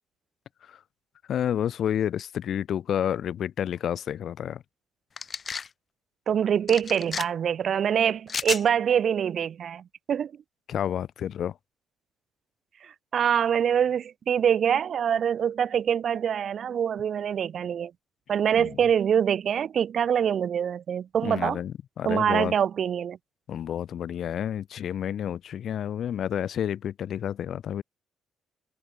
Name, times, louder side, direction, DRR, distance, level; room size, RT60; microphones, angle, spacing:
voice 1, 1.3-4.6 10.7-11.6 18.6-18.7 21.2-22.5 23.5-27.8, left 9 dB, 60° left, 4.2 m, -30 dB
sound 1, 5.2-5.7 6.7-7.2 8.3-8.6, left 6 dB, 35° left, 3.4 m, -32 dB
voice 2, 6.3-10.3 12.8-17.9 18.3-21.6 22.0-23.2, right 8 dB, 55° right, 0.5 m, -25 dB
cardioid pair, 110°, 0 cm